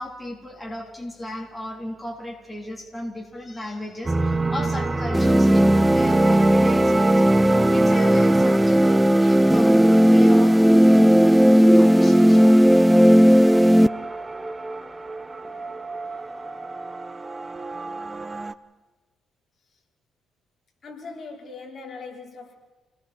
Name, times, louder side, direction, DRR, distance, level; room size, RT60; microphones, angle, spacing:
voice 1, 0.0-7.2 7.7-12.6, left 1 dB, 10° left, 3.9 m, -35 dB
sound 1, 4.1-18.5, right 3 dB, 25° right, 1.1 m, -28 dB
sound 2, 5.1-13.9, equal, 5° right, 0.6 m, -16 dB
voice 2, 20.8-22.6, left 4 dB, 45° left, 4.7 m, -39 dB
29.5 x 20.0 x 4.5 m
cardioid pair, 90°, 0 cm